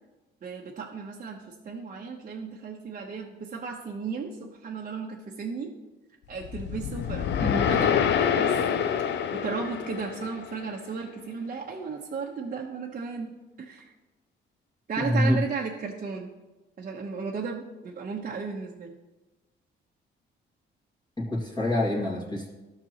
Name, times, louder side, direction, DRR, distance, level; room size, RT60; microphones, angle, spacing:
voice 1, 0.4-5.7 6.3-8.8 9.3-13.9 14.9-16.3 16.8-18.9, right 5 dB, 45° right, -1 dB, 1.0 m, -35 dB
sound 1, 6.4-10.7, left 8 dB, 65° left, 0.5 m, -26 dB
voice 2, 15.0-15.4 21.2-22.5, left 1 dB, 20° left, -3 dB, 2.1 m, -26 dB
13.5 x 6.0 x 3.0 m, 1.1 s
cardioid pair, 90°, 20 cm